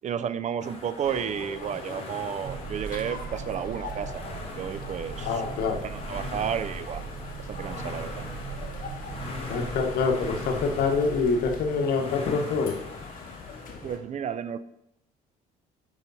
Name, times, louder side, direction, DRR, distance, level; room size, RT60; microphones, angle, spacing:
voice 1, 0.0-4.2 4.6-5.4 5.8-7.0 7.5-8.3 13.8-14.6, right 8 dB, 45° right, 13 dB, 0.5 m, -32 dB
sound 1, 0.6-13.8, left 3 dB, 35° left, 1.6 m, -42 dB
sound 2, 1.0-14.0, left 4 dB, 55° left, 1.6 m, -42 dB
sound 3, 2.4-11.7, right 6 dB, 80° right, 1.5 m, -39 dB
voice 2, 5.2-5.8 9.5-12.7, left 4 dB, 70° left, 4 dB, 1.4 m, -26 dB
8.9 x 5.7 x 4.1 m, 0.81 s
cardioid pair, 110°, 17 cm